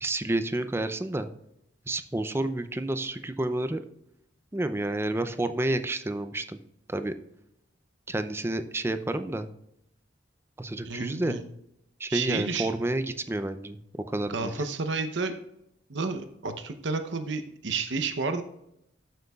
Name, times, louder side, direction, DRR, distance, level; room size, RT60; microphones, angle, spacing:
voice 1, 0.0-1.3 1.9-3.8 4.5-6.6 6.9-7.1 8.1-9.5 10.6-11.4 12.0-13.8 14.1-14.5, right 1 dB, 15° right, 9 dB, 0.5 m, -30 dB
voice 2, 10.8-11.4 12.1-12.7 14.3-15.3 15.9-18.4, right 4 dB, 70° right, 8 dB, 0.8 m, -31 dB
14.0 x 7.8 x 2.4 m, 0.80 s
head